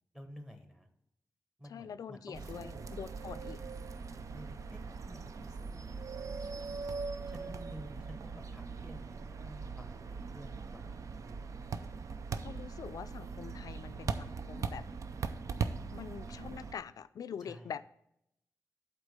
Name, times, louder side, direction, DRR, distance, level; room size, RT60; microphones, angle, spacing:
voice 1, 0.1-0.9 1.6-3.0 3.2-3.5 4.3-6.5 7.3-9.9 10.3-11.5 17.4-17.7, equal, 10° right, 1.0 m, -52 dB
voice 2, 1.7-3.6 12.4-14.8 15.9-17.9, left 7 dB, 90° left, 0.3 m, -44 dB
sound 1, 2.3-16.7, right 5 dB, 65° right, 0.5 m, -40 dB
8.0 x 4.2 x 6.5 m
wide cardioid pair, 165°, 6 cm